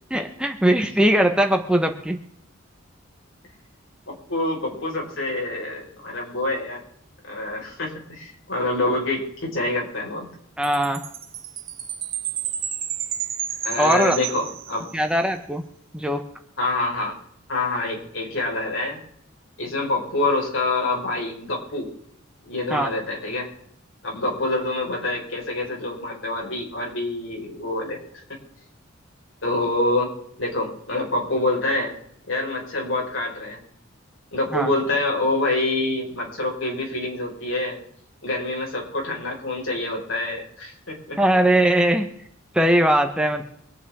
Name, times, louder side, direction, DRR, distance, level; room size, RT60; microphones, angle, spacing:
voice 1, 0.1-2.2 10.6-11.0 13.8-14.2 14.9-15.6 15.9-16.2 22.7-22.9 34.5-34.7 41.2-42.1 42.5-43.5, right 1 dB, 5° right, 5 dB, 1.1 m, -20 dB
voice 2, 4.1-6.8 7.2-10.3 13.6-14.9 16.6-17.2 17.5-19.0 19.6-21.9 22.4-23.5 24.0-28.0 28.3-28.4 29.4-30.1 30.4-31.9 32.3-33.6 34.3-37.8 38.2-41.2, left 2 dB, 70° left, -1 dB, 5.0 m, -26 dB
Chime, 10.6-15.1, right 9 dB, 45° right, 1.9 m, -31 dB
24.5 x 9.4 x 3.6 m, 0.70 s
head